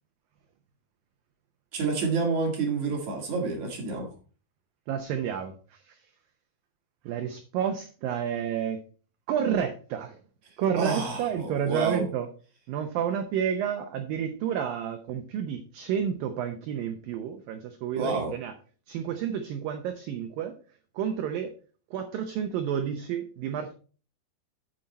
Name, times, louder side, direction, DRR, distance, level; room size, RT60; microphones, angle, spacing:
voice 1, 1.7-4.1 10.8-12.0 17.9-18.3, right 4 dB, 50° right, 1 dB, 2.8 m, -29 dB
voice 2, 4.9-6.0 7.1-8.8 9.3-10.2 10.6-12.3 12.7-18.5 18.9-20.6 21.0-21.5 21.9-23.7, right 8 dB, 85° right, 8 dB, 2.0 m, -30 dB
8.7 x 7.9 x 4.2 m, 0.38 s
omnidirectional pair, 5.1 m